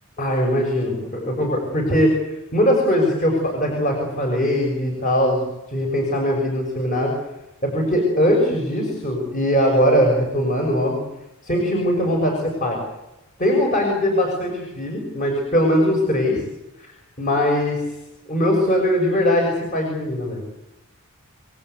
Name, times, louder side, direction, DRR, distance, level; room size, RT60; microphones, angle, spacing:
voice 1, 0.2-7.1 7.6-11.0 11.4-12.8 13.4-16.4 17.2-17.8 18.3-20.4, equal, 35° left, 1 dB, 6.2 m, -20 dB
28.5 x 18.5 x 8.2 m, 0.95 s
head